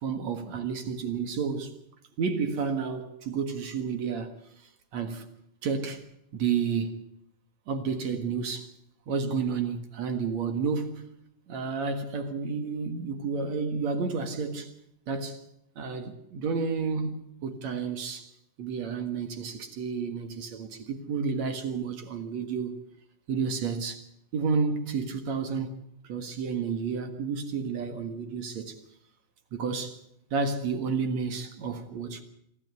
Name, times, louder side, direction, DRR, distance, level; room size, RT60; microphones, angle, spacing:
voice 1, 0.0-1.8 2.2-4.4 4.9-5.2 5.6-6.1 6.3-7.0 7.7-8.7 9.1-11.1 11.5-14.7 15.1-15.4 15.8-18.3 18.6-22.8 23.3-24.0 24.3-25.8 26.0-28.8 29.5-30.0 30.3-32.2, right 5 dB, 55° right, 2.6 m, -31 dB
25.0 x 13.5 x 8.3 m
omnidirectional pair, 4.2 m